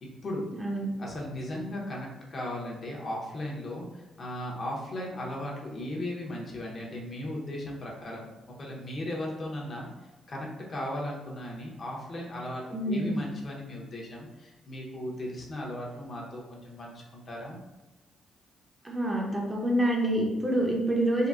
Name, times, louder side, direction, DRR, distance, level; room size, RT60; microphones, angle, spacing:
voice 1, 0.0-0.4 1.0-9.9 10.3-17.6, left 1 dB, 45° left, -2 dB, 0.7 m, -37 dB
voice 2, 0.5-0.9 12.7-13.2 18.8-21.3, right 1 dB, 20° right, -1 dB, 0.5 m, -27 dB
3.7 x 2.0 x 2.3 m, 1.0 s
cardioid pair, 95°, 0 cm